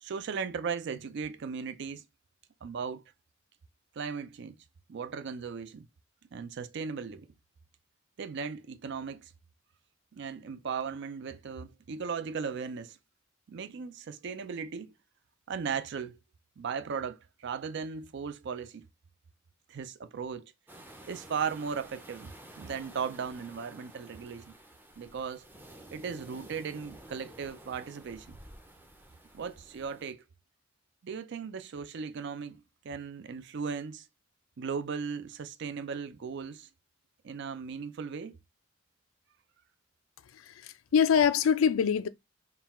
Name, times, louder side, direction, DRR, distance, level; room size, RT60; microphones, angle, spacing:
voice 1, 0.0-2.0 2.6-3.0 4.0-4.6 4.9-5.9 6.3-7.3 8.2-9.3 10.1-13.0 13.5-14.9 15.5-16.2 16.6-18.9 19.7-20.5 21.1-24.5 25.0-25.5 25.9-28.4 29.3-30.2 31.0-34.1 34.6-36.7 37.2-38.4, right 6 dB, 60° right, 0.4 m, -37 dB
sound 1, 20.7-30.1, right 1 dB, 10° right, 0.5 m, -52 dB
voice 2, 40.3-42.1, left 7 dB, 85° left, 0.4 m, -25 dB
3.8 x 2.3 x 4.1 m
head